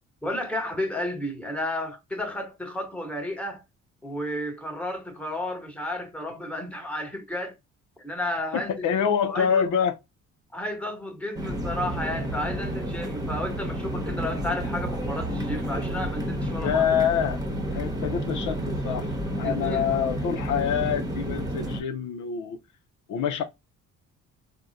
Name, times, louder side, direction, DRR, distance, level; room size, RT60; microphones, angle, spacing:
voice 1, 0.2-3.6 4.0-7.6 8.0-9.6 10.5-16.8 19.4-19.9, left 1 dB, 5° left, 1.1 m, -32 dB
voice 2, 8.5-9.9 16.6-17.4 17.7-22.6 23.1-23.4, left 8 dB, 80° left, 0.6 m, -26 dB
sound 1, 11.3-21.8, equal, 10° right, 0.9 m, -30 dB
3.5 x 2.1 x 2.5 m
cardioid pair, 90°, 30 cm